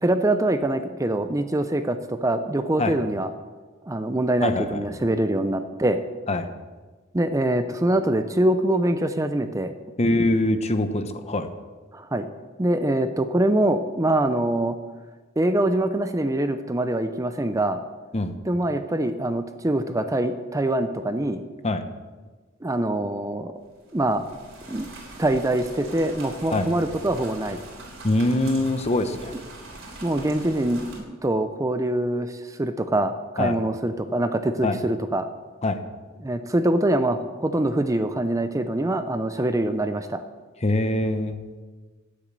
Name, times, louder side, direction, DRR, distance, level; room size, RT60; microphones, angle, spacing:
voice 1, 0.0-3.3 3.9-6.0 7.1-9.7 11.9-12.3 12.6-14.8 15.4-17.8 18.5-21.4 22.6-23.5 23.9-24.2 24.7-24.9 25.2-27.6 30.0-35.3 36.2-40.2, right 1 dB, 15° right, 9 dB, 0.6 m, -24 dB
voice 2, 4.4-4.8 6.3-6.5 10.0-11.5 18.1-18.3 21.6-21.8 26.5-26.7 28.0-29.3 33.4-33.6 34.6-34.8 35.6-35.8 40.6-41.4, left 1 dB, 30° left, 8 dB, 0.9 m, -23 dB
sound 1, 23.7-31.0, right 2 dB, 65° right, 3.6 m, -42 dB
12.0 x 9.1 x 7.6 m, 1.3 s
head